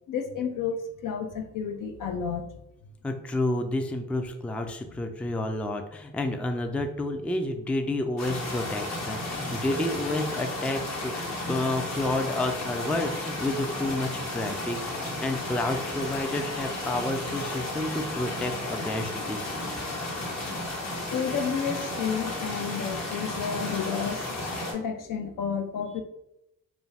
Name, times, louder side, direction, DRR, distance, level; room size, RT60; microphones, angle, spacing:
voice 1, 0.1-2.6 20.5-20.6 21.1-24.3 24.7-26.0, left 6 dB, 65° left, 6 dB, 0.5 m, -31 dB
voice 2, 3.0-11.1 11.5-19.5, left 2 dB, 5° left, 5 dB, 0.3 m, -30 dB
sound 1, 8.2-24.7, left 2 dB, 50° left, 1.1 m, -33 dB
sound 2, 12.8-18.8, left 2 dB, 30° left, 0.7 m, -49 dB
2.5 x 2.3 x 3.2 m, 0.85 s
supercardioid pair, 55°, 34 cm